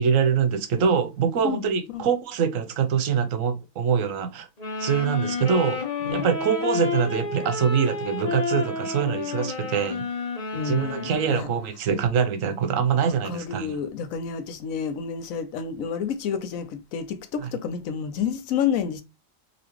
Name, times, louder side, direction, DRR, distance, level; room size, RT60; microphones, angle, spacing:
voice 1, 0.0-4.5 4.8-5.8 6.1-10.0 10.6-13.8 17.4-17.5, right 7 dB, 80° right, 1.1 m, -24 dB
sound 1, 4.6-11.6, left 4 dB, 35° left, 0.9 m, -30 dB
voice 2, 10.5-11.5 13.2-19.0, left 7 dB, 90° left, 1.1 m, -29 dB
4.1 x 2.7 x 2.9 m
omnidirectional pair, 1.4 m